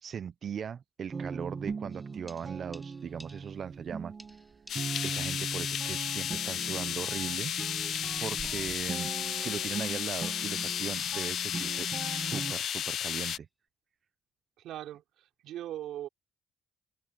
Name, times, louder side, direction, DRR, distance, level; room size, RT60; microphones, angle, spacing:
voice 1, 0.0-4.1 5.0-7.5 8.2-9.1 9.4-13.5, right 7 dB, 55° right, 0.7 m, -39 dB
sound 1, 1.1-12.5, right 5 dB, 40° right, 1.5 m, -40 dB
sound 2, 1.9-3.9 4.2-5.8 6.1-6.2 7.4-9.6 10.1-10.2 10.6-10.7 11.0-11.2 11.5-11.7 12.0-12.2 13.2-13.4, equal, ahead, 4.4 m, -58 dB
sound 3, 4.7-13.4, left 10 dB, 70° left, 0.4 m, -33 dB
voice 2, 14.6-16.1, right 12 dB, 85° right, 3.5 m, -40 dB
open air
cardioid pair, 90°, 0 cm